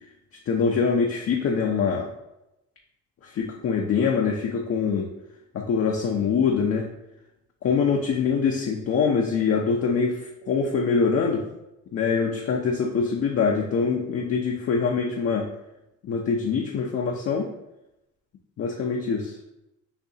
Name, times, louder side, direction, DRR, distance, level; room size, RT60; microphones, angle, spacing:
voice 1, 0.5-2.1 3.2-5.1 5.5-6.8 7.6-11.4 11.9-15.5 16.0-17.5 18.6-19.3, left 5 dB, 50° left, 0 dB, 0.6 m, -24 dB
6.5 x 2.7 x 2.7 m, 0.91 s
cardioid pair, 95°, 31 cm